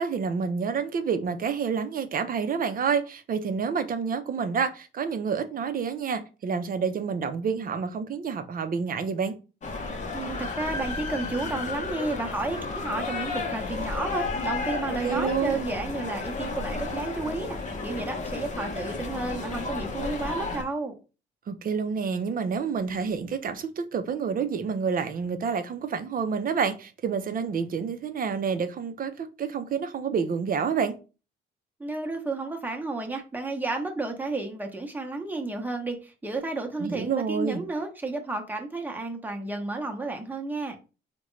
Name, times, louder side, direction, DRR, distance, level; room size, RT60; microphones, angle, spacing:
voice 1, 0.0-9.3 15.0-15.6 21.5-31.0 36.8-37.6, right 6 dB, 45° right, 0.5 m, -28 dB
sound 1, 9.6-20.6, left 3 dB, 35° left, 0.7 m, -32 dB
voice 2, 10.1-21.0 31.8-40.8, right 3 dB, 10° right, 0.7 m, -32 dB
3.6 x 2.2 x 3.1 m
cardioid pair, 90°, 20 cm